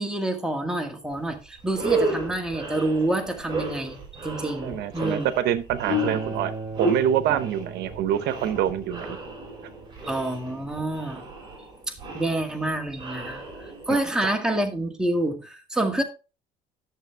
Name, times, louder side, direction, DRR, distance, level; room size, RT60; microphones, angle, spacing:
voice 1, 0.0-5.3 10.0-11.2 12.1-16.0, right 1 dB, 5° right, 2.0 m, -28 dB
sound 1, 1.2-1.3 1.7-14.0, right 1 dB, 25° right, 5.9 m, -32 dB
voice 2, 4.6-6.5 6.8-9.2 13.9-14.4, right 10 dB, 75° right, 0.9 m, -26 dB
Acoustic guitar, 5.9-11.1, right 4 dB, 45° right, 4.3 m, -38 dB
11.0 x 6.8 x 3.4 m
cardioid pair, 110°, 17 cm